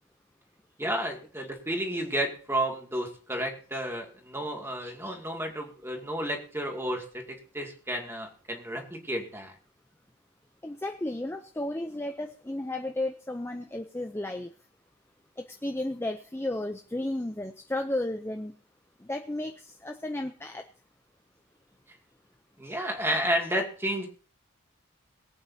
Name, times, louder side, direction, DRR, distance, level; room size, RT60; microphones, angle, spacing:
voice 1, 0.8-9.6 22.6-24.1, right 1 dB, 10° right, 1 dB, 2.3 m, -31 dB
voice 2, 10.6-14.5 15.6-18.5 19.0-20.7, left 1 dB, 10° left, 6 dB, 0.5 m, -33 dB
22.5 x 8.6 x 2.8 m, 0.41 s
head